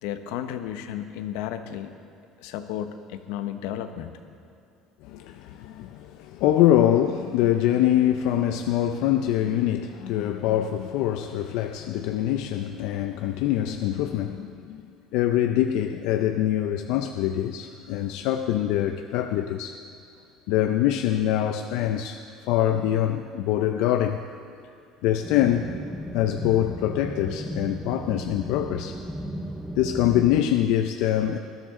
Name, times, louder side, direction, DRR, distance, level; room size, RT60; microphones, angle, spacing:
voice 1, 0.0-1.9 2.4-4.1, left 10 dB, 90° left, 8 dB, 1.0 m, -33 dB
voice 2, 5.0-19.8 20.5-24.2 25.0-25.7 26.1-29.0 29.8-31.4, left 11 dB, 65° left, 6 dB, 0.5 m, -24 dB
sound 1, 25.2-30.4, equal, ahead, 0.8 m, -35 dB
19.5 x 13.5 x 3.7 m, 2.5 s
cardioid pair, 175°, 0 cm